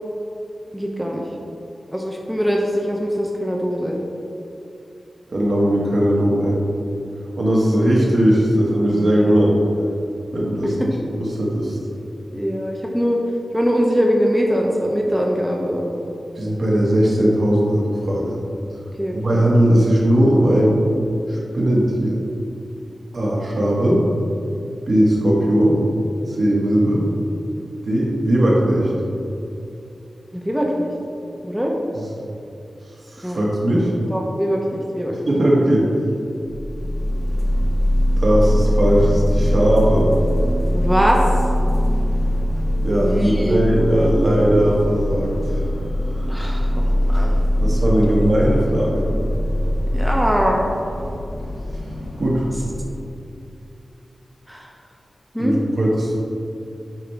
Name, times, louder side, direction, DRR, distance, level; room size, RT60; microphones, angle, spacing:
voice 1, 0.7-1.2 1.9-4.0 8.9-9.3 10.6-10.9 12.3-13.2 13.5-16.1 19.0-19.4 30.3-30.9 31.4-31.8 33.2-33.5 34.1-35.1 40.7-41.3 43.0-43.6 46.3-46.7 47.1-47.4 49.9-50.7 54.5-54.7 55.3-55.6, equal, 5° right, -1 dB, 0.7 m, -22 dB
voice 2, 5.3-6.6 7.4-9.5 10.3-10.7 11.2-11.8 16.4-18.3 19.1-20.8 21.3-22.2 23.1-24.0 24.9-25.7 26.3-27.0 27.8-28.9 33.1-33.9 35.3-35.8 38.2-40.1 42.8-45.6 46.1-46.2 47.6-49.0 52.2-52.4 55.4-56.2, right 1 dB, 60° right, -4 dB, 1.6 m, -18 dB
sound 1, 36.5-53.1, equal, 55° left, 0.9 m, -21 dB
8.7 x 5.1 x 3.4 m, 2.7 s
wide cardioid pair, 110°, 0 cm